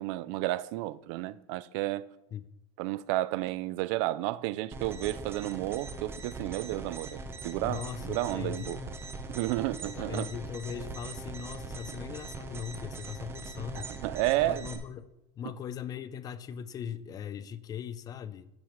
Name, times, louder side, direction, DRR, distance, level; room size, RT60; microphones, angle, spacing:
voice 1, 0.0-2.1 2.8-8.8 9.3-10.3 13.7-14.7, right 16 dB, 65° right, 0.4 m, -32 dB
sound 1, 4.7-14.8, right 3 dB, 15° right, 0.7 m, -41 dB
voice 2, 7.6-8.9 9.8-13.9 14.4-15.1 15.4-18.5, left 8 dB, 25° left, 0.4 m, -39 dB
15.0 x 4.9 x 3.0 m
cardioid pair, 160°, 16 cm